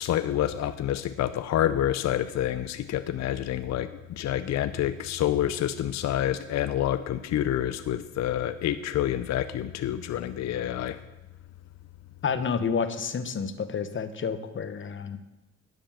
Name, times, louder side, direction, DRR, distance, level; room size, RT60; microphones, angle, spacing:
voice 1, 0.0-11.0, left 11 dB, 60° left, 12 dB, 0.6 m, -28 dB
voice 2, 12.2-15.2, left 6 dB, 40° left, 11 dB, 1.0 m, -29 dB
10.5 x 7.1 x 7.2 m, 1.0 s
cardioid pair, 90°, 30 cm